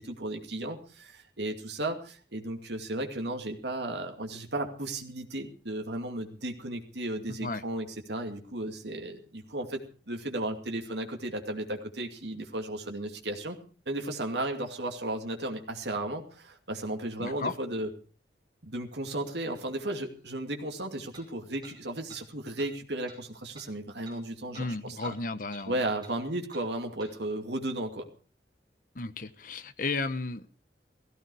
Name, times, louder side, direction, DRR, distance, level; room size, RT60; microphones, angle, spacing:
voice 1, 0.0-13.6 13.9-17.9 18.6-25.1 25.7-28.1, right 1 dB, 75° right, 3 dB, 2.5 m, -35 dB
voice 2, 7.3-7.6 17.2-17.5 24.5-25.8 28.9-30.5, left 3 dB, 50° left, 12 dB, 1.0 m, -34 dB
sound 1, 19.6-19.7 21.1-21.3 21.6-21.8 22.1-22.2 22.6-22.7 23.1-23.2 23.5-23.7 24.1-24.2 24.5-24.7 25.0-25.2 25.5-25.7 26.0-26.2 26.5-26.7 27.0-27.1, right 3 dB, 25° right, 6.0 m, -51 dB
17.0 x 15.5 x 4.8 m, 0.39 s
head